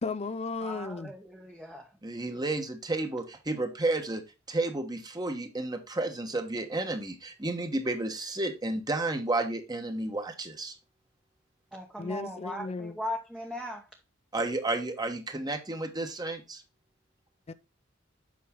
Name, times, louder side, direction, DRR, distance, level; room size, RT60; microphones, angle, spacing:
voice 1, 0.0-1.1 12.0-13.0 17.5-17.6, left 4 dB, 30° left, 0.4 m, -35 dB
voice 2, 0.6-1.9 11.7-13.9, left 1 dB, 5° right, 0.9 m, -38 dB
voice 3, 2.0-4.2 4.5-10.8 14.3-16.6, right 2 dB, 20° right, 1.2 m, -32 dB
8.5 x 5.5 x 3.7 m
head